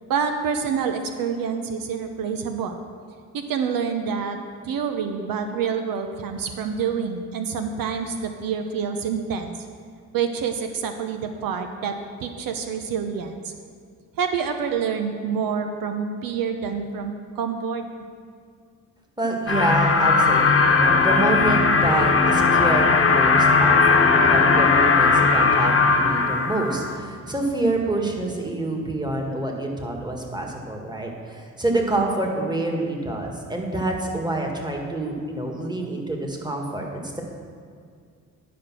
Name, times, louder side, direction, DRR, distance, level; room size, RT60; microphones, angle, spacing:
voice 1, 0.1-2.8 3.3-9.7 10.1-11.9 12.2-13.5 14.2-17.8, right 6 dB, 75° right, 6 dB, 0.7 m, -27 dB
voice 2, 19.2-37.2, right 2 dB, 10° right, 1 dB, 1.7 m, -27 dB
sound 1, 19.5-27.0, left 4 dB, 40° left, 1.1 m, -18 dB
10.5 x 5.1 x 6.0 m, 2.2 s
cardioid pair, 80°, 34 cm